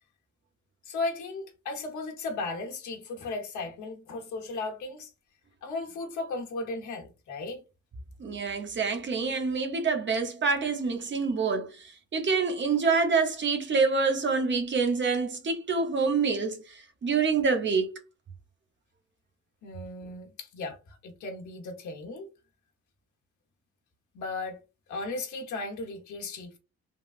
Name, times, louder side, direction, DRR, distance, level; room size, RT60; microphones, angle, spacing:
voice 1, 0.8-5.1 5.6-7.6 19.6-22.3 24.1-24.6 24.9-26.6, left 3 dB, 75° left, 1.1 m, -36 dB
voice 2, 8.2-17.9, right 4 dB, 40° right, 0.7 m, -27 dB
3.6 x 2.3 x 2.4 m
cardioid pair, 90°, 30 cm